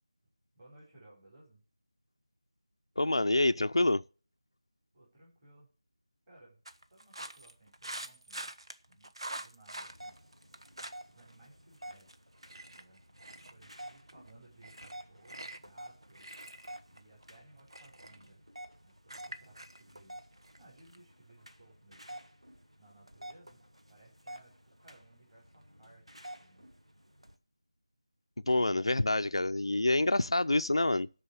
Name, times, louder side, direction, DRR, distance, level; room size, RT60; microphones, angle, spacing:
voice 1, 0.5-1.6 4.9-5.7 6.3-6.6 6.9-8.5 8.9-10.2 11.0-12.1 12.7-13.0 13.5-16.3 16.9-18.4 18.8-20.2 20.6-22.2 22.8-23.6 23.9-26.7, right 2 dB, 15° right, 5.0 m, -60 dB
voice 2, 3.0-4.0 28.5-31.1, left 2 dB, 60° left, 0.5 m, -27 dB
sound 1, 6.6-11.3 11.6-21.0, right 1 dB, 60° right, 1.2 m, -46 dB
sound 2, 9.9-27.4, right 1 dB, 90° right, 1.8 m, -51 dB
12.5 x 4.7 x 8.5 m
figure-of-eight pair, 165°, 3 cm